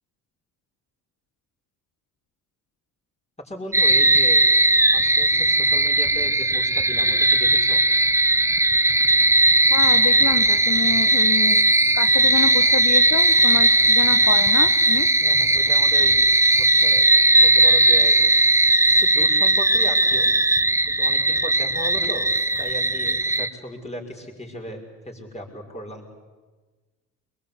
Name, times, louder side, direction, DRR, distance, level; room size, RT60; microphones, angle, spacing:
voice 1, 3.4-4.4 4.9-7.8 15.2-16.2 16.6-17.1 17.3-18.2 19.0-20.3 20.9-22.3 22.6-26.0, equal, 15° left, 1 dB, 5.9 m, -36 dB
sound 1, 3.7-23.5, right 2 dB, 5° right, 0.9 m, -18 dB
voice 2, 9.7-11.6 11.9-15.1, left 8 dB, 45° left, 8 dB, 1.3 m, -28 dB
23.5 x 21.5 x 8.6 m, 1.3 s
hypercardioid pair, 60°, 39 cm